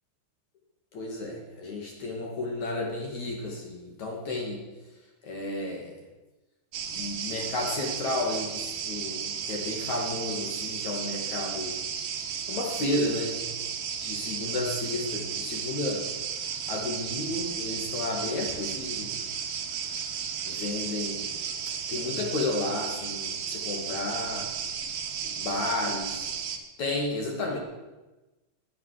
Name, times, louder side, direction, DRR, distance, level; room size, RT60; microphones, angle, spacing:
voice 1, 0.9-4.6 5.2-5.9 6.9-11.8 12.5-13.4 14.0-16.1 16.7-19.2 20.5-21.3 21.9-24.5 25.4-26.3 26.8-27.6, left 2 dB, 50° left, 0 dB, 2.9 m, -32 dB
sound 1, 6.7-26.6, right 7 dB, 65° right, 2.9 m, -34 dB
19.0 x 9.1 x 6.5 m, 1.1 s
omnidirectional pair, 5.2 m